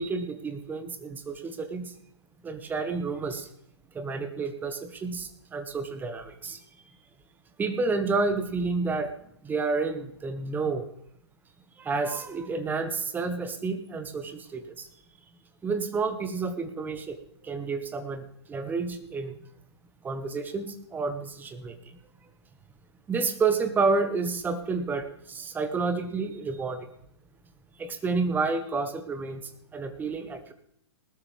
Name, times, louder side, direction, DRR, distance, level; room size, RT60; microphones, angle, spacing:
voice 1, 0.0-1.9 2.4-3.5 3.9-6.6 7.6-9.1 9.4-10.9 11.8-14.9 15.6-17.2 17.4-19.4 20.0-21.7 23.1-26.9 27.8-29.4 29.7-30.5, right 4 dB, 10° right, 9 dB, 1.5 m, -30 dB
20.0 x 12.5 x 3.5 m, 0.70 s
figure-of-eight pair, 120°, 14 cm